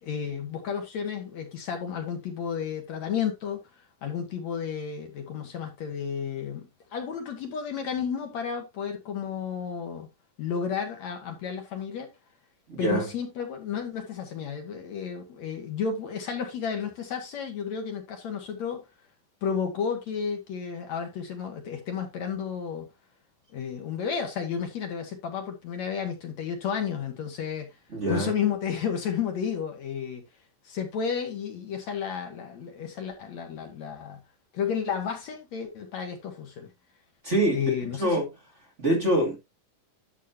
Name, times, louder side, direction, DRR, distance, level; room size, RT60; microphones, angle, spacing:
voice 1, 0.0-10.1 10.4-12.1 12.8-18.9 19.4-22.9 23.5-27.8 28.1-30.2 30.6-34.2 34.5-36.7 37.5-38.2, left 7 dB, 60° left, 2.7 m, -32 dB
voice 2, 12.7-13.1 27.9-28.3 37.2-38.3 38.8-39.4, right 1 dB, 25° right, 2.7 m, -25 dB
11.0 x 7.3 x 2.8 m
omnidirectional pair, 3.7 m